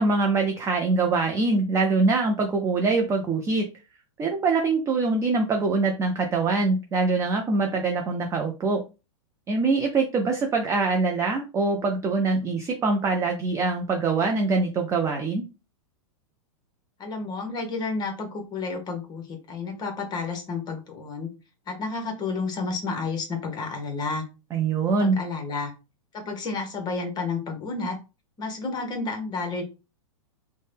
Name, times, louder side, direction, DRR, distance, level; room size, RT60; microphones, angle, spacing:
voice 1, 0.0-3.7 4.2-8.8 9.5-15.4 24.5-25.2, right 3 dB, 15° right, 2 dB, 0.4 m, -24 dB
voice 2, 17.0-21.3 21.7-24.2 25.0-25.7 26.1-28.0 28.4-29.6, left 4 dB, 25° left, 4 dB, 0.9 m, -31 dB
2.6 x 2.1 x 3.3 m, 0.29 s
hypercardioid pair, 115°, 17 cm